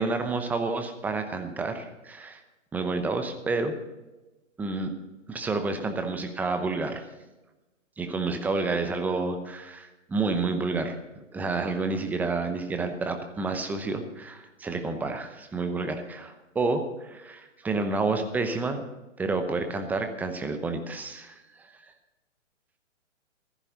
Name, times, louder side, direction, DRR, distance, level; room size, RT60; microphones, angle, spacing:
voice 1, 0.0-2.4 2.7-3.8 4.6-4.9 5.3-7.1 8.0-10.9 11.3-18.8 19.2-21.9, right 3 dB, 5° right, 6 dB, 0.8 m, -29 dB
15.5 x 14.0 x 4.0 m, 1.1 s
figure-of-eight pair, 135°, 38 cm